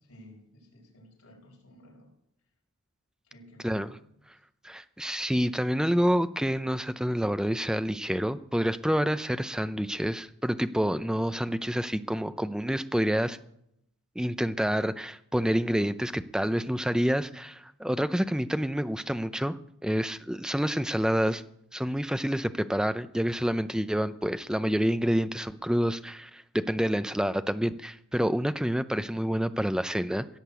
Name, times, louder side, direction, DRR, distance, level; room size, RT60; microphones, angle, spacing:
voice 1, 0.0-2.1 3.2-4.1, equal, 85° left, -2 dB, 4.9 m, -54 dB
voice 2, 4.6-13.4 14.2-19.6 19.8-21.4 21.7-30.3, equal, 5° right, 12 dB, 0.5 m, -28 dB
16.5 x 6.7 x 8.1 m, 0.75 s
head